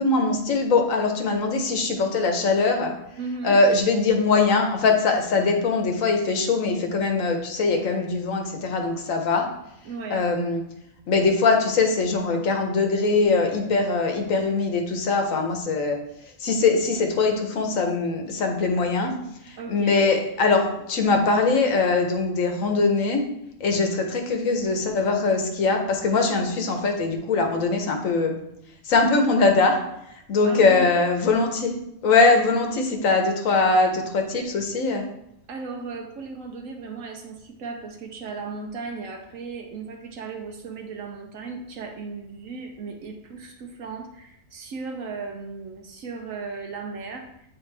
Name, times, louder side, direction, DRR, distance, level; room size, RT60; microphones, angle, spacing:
voice 1, 0.0-2.9 3.4-9.5 10.1-10.6 11.1-16.0 16.4-19.1 19.5-23.2 23.6-28.4 28.8-29.8 30.3-31.7 32.0-35.0, left 3 dB, 75° left, 4 dB, 1.3 m, -22 dB
voice 2, 3.2-3.6 9.8-10.2 19.6-19.9 30.4-30.9 35.5-47.3, right 4 dB, 75° right, 2 dB, 1.1 m, -36 dB
8.1 x 4.0 x 3.3 m, 0.79 s
omnidirectional pair, 1.4 m